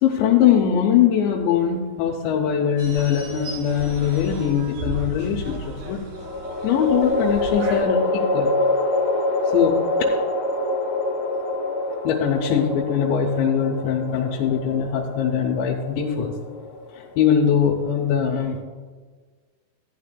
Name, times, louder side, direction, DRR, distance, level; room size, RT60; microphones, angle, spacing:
voice 1, 0.0-6.0 6.6-8.5 9.5-9.7 12.0-16.3 17.2-18.6, left 8 dB, 80° left, -1 dB, 2.9 m, -21 dB
sound 1, 2.8-7.8, right 1 dB, 60° right, 2.8 m, -35 dB
sound 2, 3.1-3.9 6.2-17.5, left 2 dB, 65° left, 2.9 m, -26 dB
14.5 x 10.0 x 2.2 m, 1.5 s
omnidirectional pair, 5.2 m